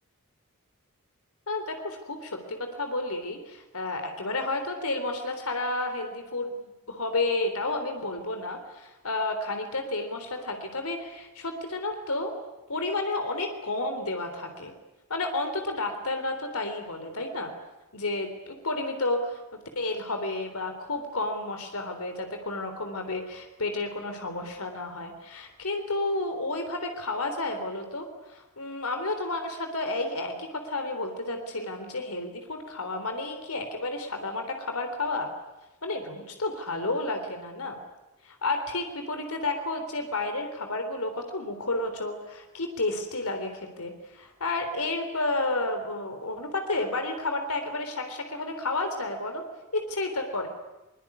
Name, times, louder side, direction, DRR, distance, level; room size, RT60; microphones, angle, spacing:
voice 1, 1.5-12.3 12.7-14.7 15.1-17.5 17.9-19.4 19.8-35.3 35.8-37.8 38.2-49.4 49.7-50.5, left 2 dB, 80° left, 6 dB, 3.7 m, -31 dB
23.0 x 21.5 x 9.8 m, 1.0 s
head